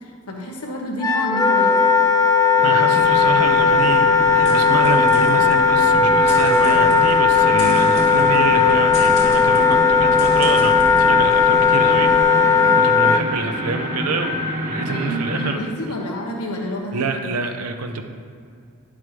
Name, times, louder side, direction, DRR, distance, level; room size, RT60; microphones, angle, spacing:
voice 1, 0.0-1.7 12.5-12.8 14.8-17.5, equal, 85° left, 0 dB, 1.4 m, -30 dB
Wind instrument woodwind instrument, 1.0-13.2, left 5 dB, 15° left, 0.3 m, -16 dB
sound 1, 2.6-15.6, equal, 50° right, 1.5 m, -29 dB
voice 2, 2.6-15.6 16.9-18.0, right 4 dB, 75° right, 6 dB, 0.8 m, -26 dB
sound 2, 2.9-12.2, left 1 dB, 65° left, 2.1 m, -37 dB
10.5 x 7.3 x 3.3 m, 2.3 s
head